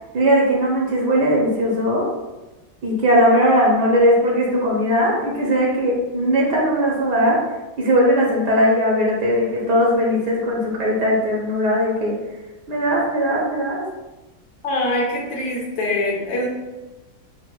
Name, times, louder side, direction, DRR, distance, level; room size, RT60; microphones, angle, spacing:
voice 1, 0.1-2.1 2.8-7.4 7.8-12.2 12.7-13.8, equal, 65° right, -3 dB, 1.4 m, -19 dB
voice 2, 14.6-16.5, left 1 dB, 90° left, -2 dB, 1.8 m, -23 dB
7.4 x 2.5 x 2.2 m, 1.1 s
omnidirectional pair, 2.1 m